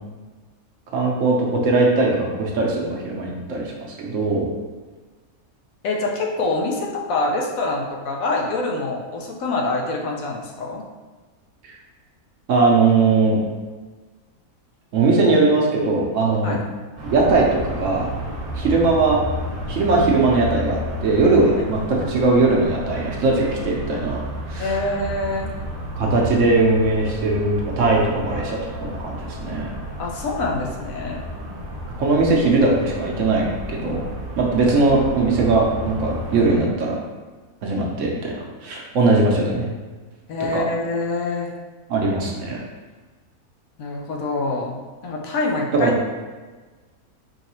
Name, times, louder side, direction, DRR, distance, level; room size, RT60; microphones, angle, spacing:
voice 1, 0.9-3.7 4.0-4.5 12.5-13.4 14.9-16.6 17.0-18.1 18.5-19.2 19.7-24.2 24.5-24.8 25.9-29.7 31.4-31.5 32.0-34.0 34.4-37.0 37.6-38.3 38.6-39.7 40.5-40.6 41.9-42.6 45.7-45.9, right 3 dB, 65° right, -2 dB, 1.0 m, -19 dB
voice 2, 5.8-10.8 16.4-16.6 21.5-21.6 24.6-25.5 30.0-31.2 40.3-41.5 43.8-44.8 45.0-45.9, left 2 dB, 70° left, -1 dB, 1.0 m, -25 dB
sound 1, 17.0-36.6, equal, 35° right, 1.0 m, -32 dB
4.7 x 3.1 x 3.0 m, 1.3 s
omnidirectional pair, 1.6 m